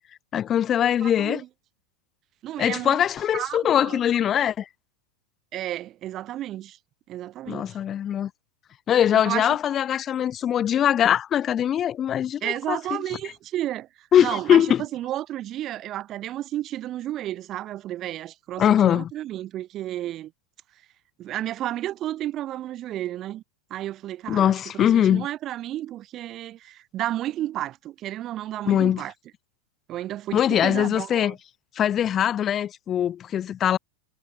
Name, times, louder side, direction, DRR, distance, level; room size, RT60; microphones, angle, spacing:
voice 1, 0.3-1.4 2.6-4.7 7.5-8.3 8.9-12.8 14.1-14.8 18.6-19.1 24.3-25.3 28.7-29.0 30.3-31.4 31.7-33.8, left 10 dB, 25° left, 0.5 m, -22 dB
voice 2, 1.0-1.5 2.4-3.0 3.3-4.0 5.5-6.8 7.1-7.8 9.1-9.5 12.4-20.3 21.2-23.4 23.7-29.1 29.9-31.3, right 13 dB, 30° right, 0.8 m, -32 dB
figure-of-eight pair, 90°, 0 cm